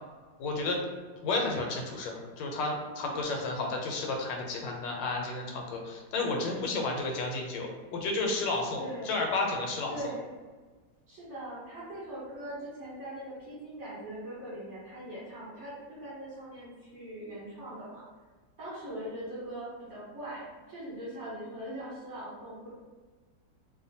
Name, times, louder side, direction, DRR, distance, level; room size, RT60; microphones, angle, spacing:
voice 1, 0.4-0.8 1.2-10.0, left 3 dB, 85° left, 1 dB, 1.3 m, -32 dB
voice 2, 8.8-9.1 9.9-10.3 11.1-18.0 18.6-22.7, right 1 dB, 45° right, -9 dB, 1.2 m, -41 dB
3.0 x 2.1 x 2.6 m, 1.4 s
omnidirectional pair, 1.9 m